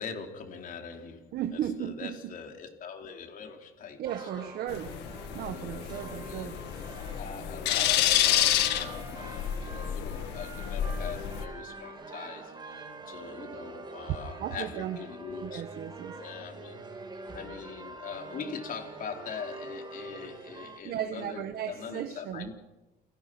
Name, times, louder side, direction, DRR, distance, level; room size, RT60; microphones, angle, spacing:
voice 1, 0.0-1.3 1.5-4.5 5.4-12.5 13.1-15.6 16.2-16.8 17.3-22.5, left 6 dB, 55° left, 3.9 m, -42 dB
voice 2, 1.3-2.3 4.0-5.0 5.3-6.6 14.4-15.0 15.4-16.2 20.8-22.5, right 10 dB, 70° right, 1.4 m, -35 dB
sound 1, 4.1-20.8, right 3 dB, 25° right, 4.3 m, -45 dB
sound 2, 4.7-11.4, left 12 dB, 85° left, 1.9 m, -29 dB
29.0 x 17.5 x 6.2 m
cardioid pair, 110°, 17 cm